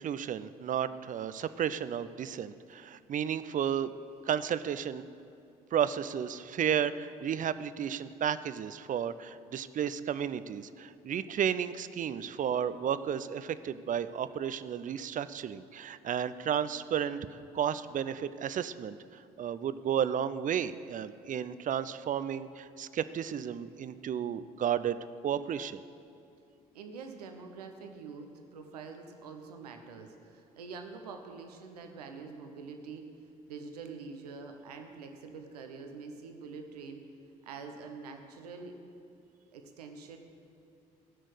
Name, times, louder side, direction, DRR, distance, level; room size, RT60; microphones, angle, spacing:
voice 1, 0.0-3.9 4.3-5.0 5.7-19.0 19.4-25.0 25.2-25.8, right 9 dB, 40° right, 14 dB, 0.6 m, -33 dB
voice 2, 26.7-33.0 33.5-37.0 37.4-38.8 39.5-40.2, right 4 dB, 85° right, 5 dB, 1.0 m, -45 dB
15.5 x 6.3 x 8.0 m, 2.5 s
hypercardioid pair, 55°, 20 cm